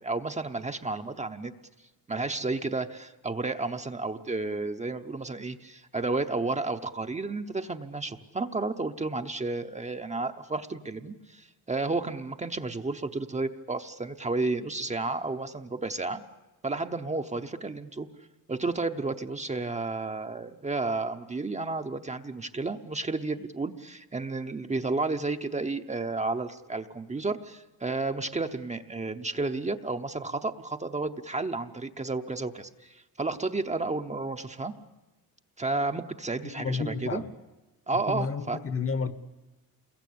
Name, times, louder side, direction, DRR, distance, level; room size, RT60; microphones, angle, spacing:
voice 1, 0.0-1.5 2.1-16.2 16.6-18.1 18.5-34.7 35.6-37.2 37.9-38.6, right 3 dB, 20° right, 0.8 m, -32 dB
voice 2, 36.4-37.3 38.1-39.1, left 5 dB, 40° left, 1.2 m, -31 dB
28.5 x 22.0 x 8.6 m
wide cardioid pair, 155°, 34 cm